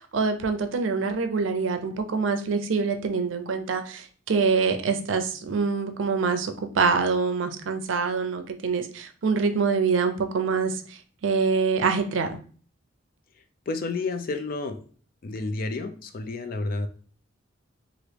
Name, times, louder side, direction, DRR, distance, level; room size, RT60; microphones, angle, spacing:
voice 1, 0.0-12.4, right 5 dB, 90° right, 7 dB, 0.5 m, -25 dB
voice 2, 13.7-14.8 15.2-16.9, left 3 dB, 50° left, 7 dB, 0.4 m, -30 dB
2.9 x 2.5 x 3.3 m, 0.42 s
head